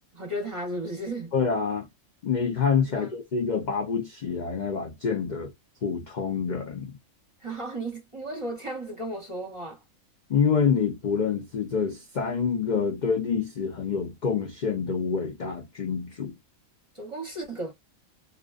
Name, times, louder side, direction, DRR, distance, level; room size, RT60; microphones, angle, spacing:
voice 1, 0.1-1.3 2.9-3.2 7.4-9.8 16.9-17.7, right 1 dB, 30° right, 0.7 m, -34 dB
voice 2, 1.3-1.9 2.2-5.5 5.8-6.9 10.3-16.3, left 6 dB, 70° left, 0.4 m, -27 dB
2.4 x 2.2 x 2.3 m
omnidirectional pair, 1.5 m